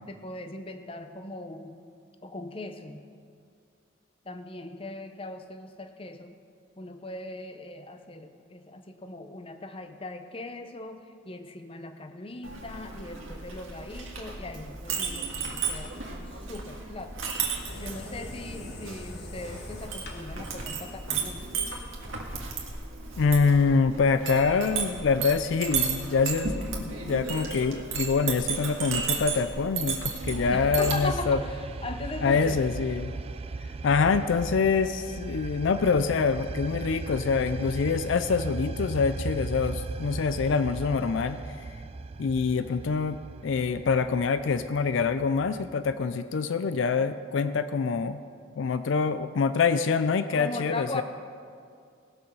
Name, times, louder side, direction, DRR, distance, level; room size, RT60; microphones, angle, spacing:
voice 1, 0.1-1.8 2.2-3.0 4.2-6.3 6.8-17.3 17.8-21.6 30.5-32.6 50.3-51.0, left 2 dB, 25° left, 8 dB, 0.6 m, -39 dB
Chink clink, 12.4-31.0, right 5 dB, 75° right, 1.8 m, -34 dB
sound 1, 17.7-22.6, left 2 dB, 50° left, 1.3 m, -45 dB
voice 2, 23.2-31.4 32.2-33.1 33.8-41.4 42.2-48.2 48.6-51.0, left 5 dB, 65° left, 12 dB, 0.4 m, -25 dB
sound 2, 30.2-45.9, right 3 dB, 30° right, 0.3 m, -38 dB
19.0 x 7.0 x 5.4 m, 2.3 s
head